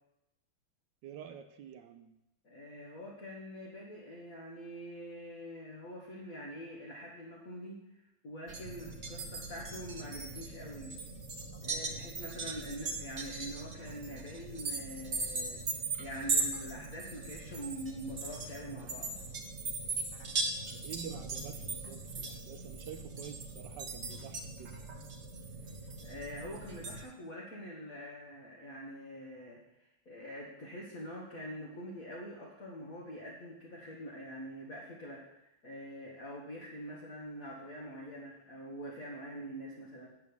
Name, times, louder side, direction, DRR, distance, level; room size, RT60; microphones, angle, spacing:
voice 1, 1.0-2.1 20.7-24.8, right 8 dB, 70° right, 8 dB, 1.2 m, -48 dB
voice 2, 2.4-11.0 11.6-15.6 16.0-19.1 26.0-40.1, equal, 40° left, -4 dB, 2.0 m, -45 dB
sound 1, 8.5-27.0, right 3 dB, 35° right, 1.4 m, -39 dB
8.4 x 8.2 x 7.1 m, 0.89 s
omnidirectional pair, 2.4 m